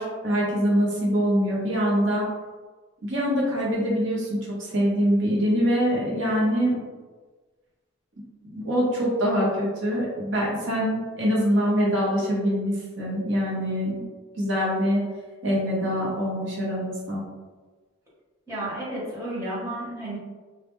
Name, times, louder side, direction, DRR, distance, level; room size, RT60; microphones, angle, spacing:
voice 1, 0.0-2.3 3.0-6.8 8.4-14.0 14.4-15.0 15.4-17.2, equal, 60° right, -5 dB, 0.8 m, -24 dB
voice 2, 18.5-20.2, right 1 dB, 15° right, -9 dB, 0.9 m, -32 dB
2.2 x 2.1 x 3.0 m, 1.3 s
head